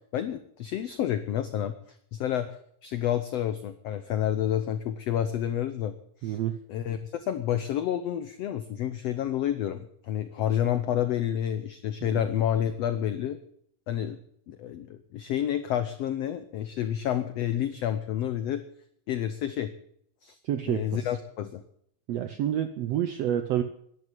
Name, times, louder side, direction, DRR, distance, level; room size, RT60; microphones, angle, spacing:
voice 1, 0.1-1.7 2.1-5.9 6.2-6.4 6.7-13.4 13.9-14.2 14.5-18.6 19.1-19.7 20.2-20.4 20.6-21.6, left 10 dB, 85° left, 11 dB, 1.4 m, -29 dB
voice 2, 6.2-6.6 12.0-12.2 20.4-21.1 22.1-23.6, right 11 dB, 80° right, 9 dB, 1.4 m, -29 dB
11.0 x 11.0 x 9.3 m, 0.68 s
omnidirectional pair, 4.0 m